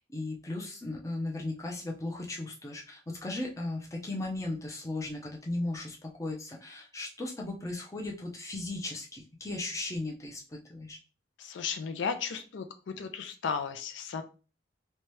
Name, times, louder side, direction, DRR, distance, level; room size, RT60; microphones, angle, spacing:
voice 1, 0.1-11.0, left 2 dB, 15° left, -1 dB, 0.5 m, -36 dB
voice 2, 11.4-14.2, left 6 dB, 80° left, 8 dB, 0.4 m, -35 dB
2.7 x 2.2 x 3.1 m, 0.35 s
head